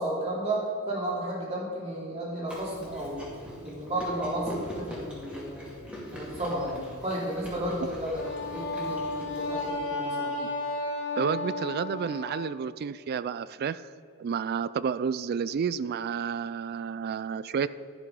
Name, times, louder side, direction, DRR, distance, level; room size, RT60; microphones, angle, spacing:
voice 1, 0.0-3.3 3.6-5.7 6.1-8.2 8.5-10.4, right 1 dB, 30° right, -5 dB, 2.8 m, -33 dB
Chewing mastication, 2.5-9.7, equal, 5° right, 2.3 m, -42 dB
Wind instrument woodwind instrument, 8.1-12.4, left 2 dB, 60° left, 2.4 m, -33 dB
voice 2, 11.2-13.8 14.2-17.7, right 6 dB, 50° right, 17 dB, 0.3 m, -30 dB
11.5 x 6.9 x 5.3 m, 2.2 s
head